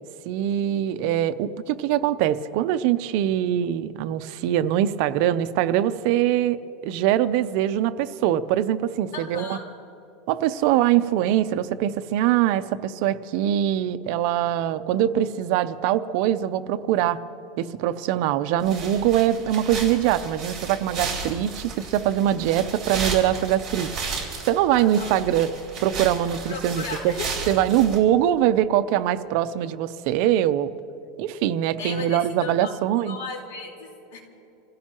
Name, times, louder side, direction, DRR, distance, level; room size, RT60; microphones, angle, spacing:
voice 1, 0.3-9.6 10.3-17.2 17.6-23.9 24.5-25.5 25.8-27.2 27.5-30.7 31.2-33.2, right 11 dB, 50° right, 12 dB, 0.6 m, -23 dB
voice 2, 9.1-9.7 24.7-25.2 26.5-27.5 31.8-34.2, left 4 dB, 85° left, 0 dB, 4.1 m, -36 dB
sound 1, 18.6-28.0, right 4 dB, 15° right, 4.2 m, -34 dB
27.5 x 16.0 x 3.0 m, 2.9 s
supercardioid pair, 160°, 0 cm